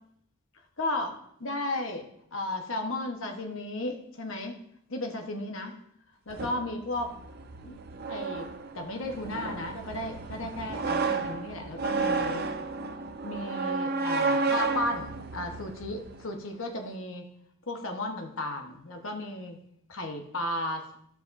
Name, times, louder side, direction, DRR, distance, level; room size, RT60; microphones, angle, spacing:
voice 1, 0.8-4.5 4.9-5.8 6.3-7.1 7.6-7.8 8.1-8.5 8.7-12.4 13.2-17.3 17.7-19.6 19.9-20.9, left 1 dB, 60° left, 3 dB, 1.1 m, -34 dB
sound 1, 6.3-16.3, right 4 dB, 45° right, 0.5 m, -32 dB
15.0 x 5.1 x 2.6 m, 0.72 s
head